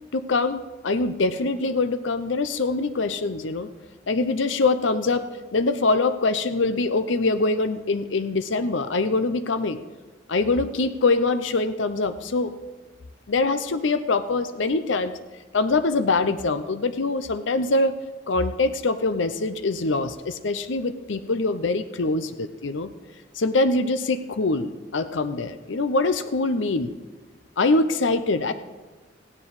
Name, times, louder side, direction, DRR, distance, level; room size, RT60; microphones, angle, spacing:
voice 1, 0.1-3.7 4.1-9.8 10.3-12.5 13.3-15.1 15.5-17.9 18.3-22.9 23.4-26.9 27.6-28.5, left 3 dB, 80° left, 10 dB, 0.7 m, -24 dB
15.5 x 9.8 x 4.9 m, 1.3 s
head